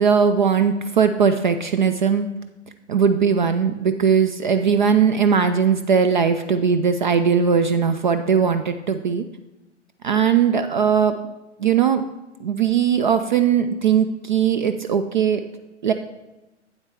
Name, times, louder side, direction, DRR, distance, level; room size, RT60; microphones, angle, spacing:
voice 1, 0.0-2.3 2.9-9.2 10.0-11.2 11.6-12.1 12.4-15.4 15.8-15.9, right 7 dB, 45° right, 10 dB, 0.4 m, -19 dB
8.6 x 8.0 x 3.4 m, 1.0 s
figure-of-eight pair, 120°, 36 cm